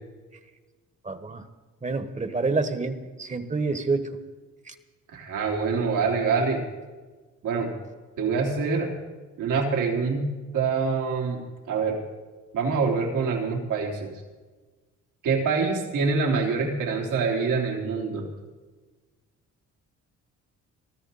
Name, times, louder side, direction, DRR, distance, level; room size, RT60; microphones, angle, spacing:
voice 1, 1.0-1.4 1.8-4.2 4.7-4.8, right 3 dB, 25° right, 9 dB, 1.4 m, -28 dB
voice 2, 5.1-6.6 7.4-7.7 8.2-8.9 9.4-11.4 11.7-12.0 12.5-14.1 15.2-18.3, right 4 dB, 85° right, -1 dB, 3.7 m, -25 dB
23.5 x 13.0 x 4.2 m, 1.3 s
cardioid pair, 90°, 30 cm